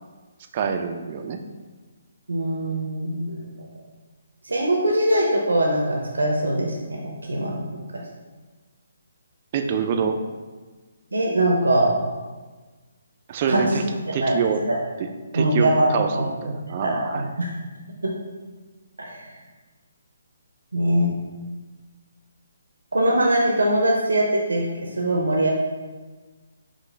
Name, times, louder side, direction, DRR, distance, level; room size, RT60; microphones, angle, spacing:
voice 1, 0.5-1.4 9.5-10.2 13.3-13.8 14.1-14.6 15.0-15.1 15.3-17.3, right 6 dB, 35° right, 5 dB, 0.3 m, -25 dB
voice 2, 2.3-3.5 4.4-7.6 11.1-11.9 13.5-13.8 14.1-14.3 14.7-14.8 15.3-16.2 16.7-17.5 18.0-18.1 19.0-19.3 20.7-21.1 22.9-24.7 25.0-25.5, right 1 dB, 75° right, -1 dB, 0.6 m, -22 dB
4.8 x 2.2 x 3.3 m, 1.3 s
figure-of-eight pair, 140°, 0 cm